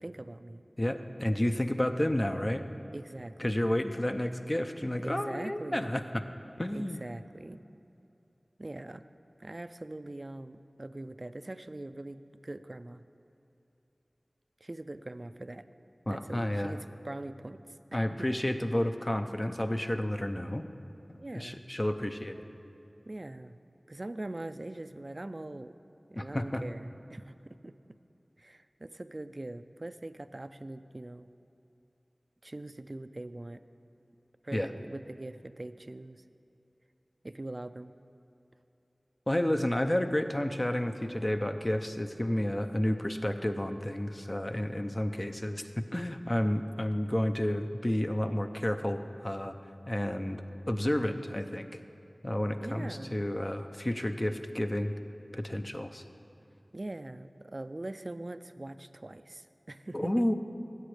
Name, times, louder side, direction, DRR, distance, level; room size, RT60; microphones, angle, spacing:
voice 1, 0.0-0.6 2.9-3.6 5.0-5.9 6.7-7.6 8.6-9.0 9.4-13.0 14.6-15.7 16.1-17.6 17.9-18.3 21.2-21.6 23.1-23.6 23.9-25.7 26.1-27.8 28.4-31.3 32.4-33.6 34.4-36.2 37.2-37.9 52.6-53.2 56.7-60.3, right 2 dB, 50° right, 12 dB, 0.4 m, -42 dB
voice 2, 0.8-2.6 3.4-6.2 6.6-7.0 16.1-16.8 17.9-20.6 21.3-22.3 26.1-26.6 34.5-34.7 39.3-45.6 45.9-49.5 49.9-51.7 52.2-54.9 55.3-56.0 59.9-60.3, left 1 dB, 30° left, 7 dB, 0.6 m, -31 dB
16.5 x 8.0 x 3.3 m, 2.8 s
wide cardioid pair, 40°, 0 cm